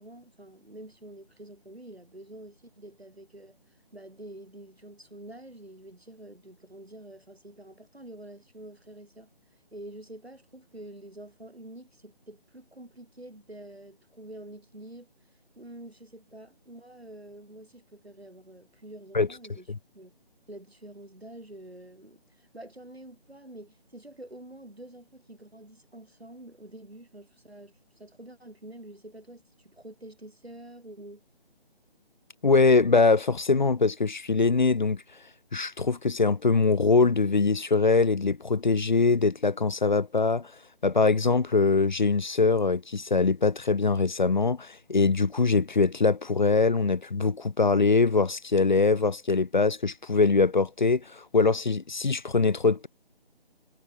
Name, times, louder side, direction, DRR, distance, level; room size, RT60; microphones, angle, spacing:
voice 1, 0.0-3.6 3.9-9.3 9.7-15.1 15.6-19.7 19.9-20.1 20.5-31.2, right 1 dB, 85° right, 7.4 m, -47 dB
voice 2, 32.4-35.0 35.5-40.5 40.8-52.9, left 4 dB, 50° left, 0.5 m, -23 dB
figure-of-eight pair, 155°, 30 cm